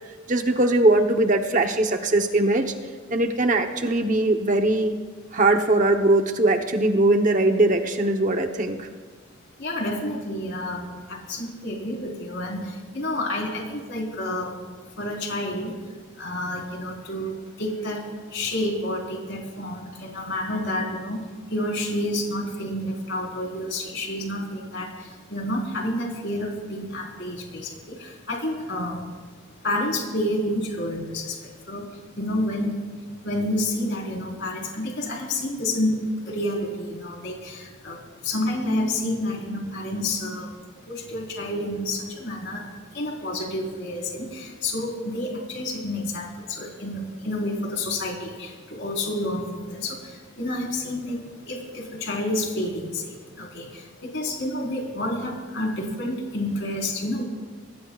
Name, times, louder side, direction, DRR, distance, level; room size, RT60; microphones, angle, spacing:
voice 1, 0.3-2.7 3.1-5.0 5.3-8.9, right 2 dB, 35° right, 5 dB, 0.9 m, -21 dB
voice 2, 9.6-14.6 15.0-15.7 16.2-21.2 21.5-29.0 29.6-31.4 31.7-31.9 32.2-32.8 33.2-38.0 38.2-40.5 40.9-42.6 42.9-57.2, left 1 dB, 55° left, -1 dB, 4.2 m, -29 dB
26.0 x 20.0 x 2.4 m, 1.5 s
head